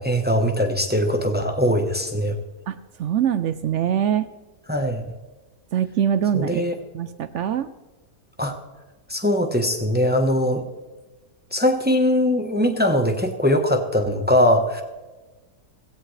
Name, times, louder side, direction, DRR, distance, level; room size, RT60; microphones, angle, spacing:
voice 1, 0.0-2.4 4.7-5.0 6.3-6.8 8.4-8.6 9.1-10.6 11.5-14.8, equal, 10° right, 4 dB, 0.8 m, -21 dB
voice 2, 2.7-4.3 5.7-6.6 6.9-7.7, right 9 dB, 70° right, 13 dB, 0.7 m, -23 dB
16.5 x 16.0 x 3.2 m, 1.2 s
omnidirectional pair, 1.7 m